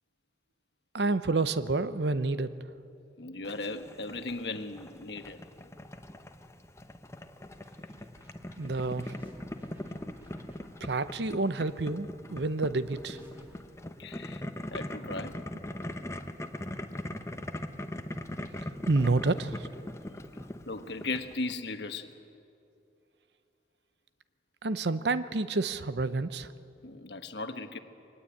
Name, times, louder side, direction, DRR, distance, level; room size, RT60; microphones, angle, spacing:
voice 1, 0.9-2.5 8.6-9.1 10.8-13.2 18.9-19.7 24.6-26.5, right 3 dB, 70° right, 13 dB, 0.8 m, -29 dB
voice 2, 3.2-5.4 14.0-14.4 14.7-15.4 20.7-22.1 26.8-27.8, left 3 dB, 70° left, 8 dB, 1.3 m, -37 dB
Boiling, 3.4-21.5, left 1 dB, 15° left, 0.9 m, -41 dB
sound 1, 8.1-10.8 12.8-13.6, equal, 15° right, 3.0 m, -54 dB
23.5 x 19.5 x 8.6 m, 2.8 s
head